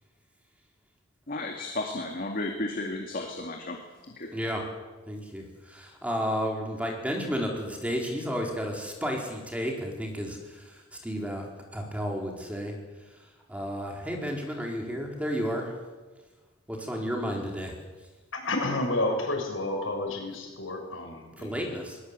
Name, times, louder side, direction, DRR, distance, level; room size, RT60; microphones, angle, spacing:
voice 1, 1.3-4.3, left 2 dB, 45° left, 2 dB, 2.3 m, -34 dB
voice 2, 4.3-4.6 5.1-12.7 13.5-15.7 16.7-17.7 21.4-22.0, equal, 5° right, 0 dB, 4.4 m, -32 dB
voice 3, 18.3-21.7, left 2 dB, 85° left, 2 dB, 6.4 m, -30 dB
20.5 x 20.5 x 8.4 m, 1.2 s
head